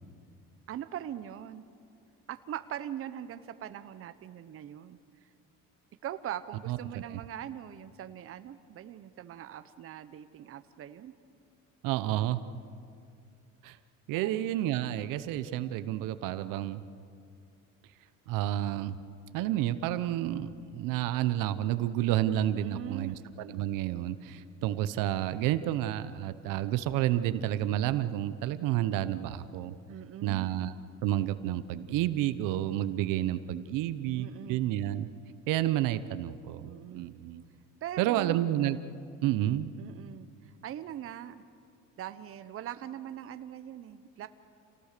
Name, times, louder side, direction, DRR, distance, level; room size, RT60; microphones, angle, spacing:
voice 1, 0.7-1.7 2.3-5.0 6.0-11.1 14.1-14.5 22.5-23.3 29.9-30.6 34.2-34.7 36.6-37.1 37.8-38.4 39.8-41.4 42.0-44.3, right 11 dB, 45° right, 11 dB, 0.9 m, -41 dB
voice 2, 11.8-12.4 13.6-13.8 14.1-16.8 18.3-19.0 19.3-29.7 30.2-30.7 31.0-35.1 35.5-37.4 38.0-38.8 39.2-39.7, right 13 dB, 75° right, 12 dB, 0.9 m, -30 dB
27.5 x 18.5 x 6.7 m, 2.4 s
cardioid pair, 125°, 32 cm